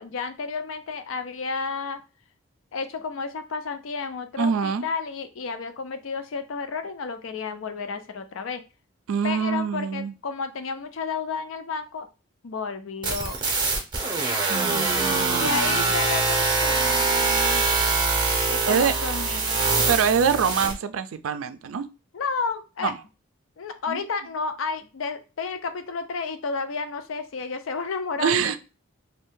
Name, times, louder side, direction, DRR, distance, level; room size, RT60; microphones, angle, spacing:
voice 1, 0.0-2.0 2.7-8.6 9.2-12.1 12.4-13.4 15.4-17.7 18.5-20.0 22.1-22.9 23.6-28.6, left 5 dB, 75° left, 0.4 m, -31 dB
voice 2, 4.4-4.9 9.1-10.1 14.5-15.9 18.7-18.9 19.3-19.4 19.9-21.9 22.8-23.0 23.9-24.0 28.2-28.6, right 6 dB, 85° right, 0.4 m, -25 dB
sound 1, 13.0-20.7, right 3 dB, 20° right, 0.6 m, -23 dB
2.6 x 2.2 x 3.6 m
head